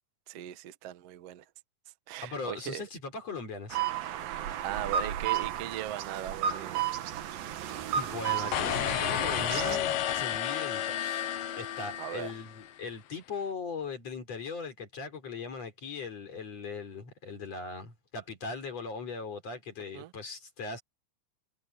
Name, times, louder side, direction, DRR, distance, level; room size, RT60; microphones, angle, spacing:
voice 1, 0.3-1.4 2.1-2.8 4.6-6.9 12.0-12.3 19.9-20.1, right 12 dB, 85° right, 1.3 m, -39 dB
voice 2, 2.2-3.8 8.0-11.2 11.6-20.8, left 4 dB, 40° left, 4.9 m, -39 dB
sound 1, 3.7-9.8, right 9 dB, 65° right, 2.9 m, -33 dB
sound 2, 8.5-12.7, left 11 dB, 70° left, 2.4 m, -31 dB
omnidirectional pair, 4.9 m